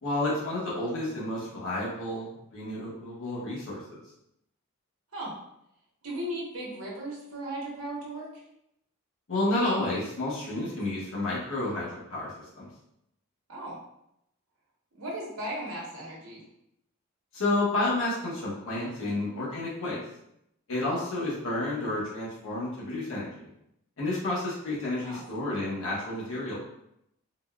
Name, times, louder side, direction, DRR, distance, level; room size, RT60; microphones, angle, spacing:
voice 1, 0.0-4.0 9.3-12.7 17.3-20.0 20.7-23.5 24.0-26.6, left 2 dB, 65° left, -6 dB, 0.9 m, -30 dB
voice 2, 6.0-8.4 10.5-10.7 13.5-13.8 14.9-16.4 19.0-19.2 25.0-25.2, right 1 dB, 85° right, -4 dB, 1.0 m, -37 dB
3.8 x 2.3 x 2.2 m, 0.79 s
head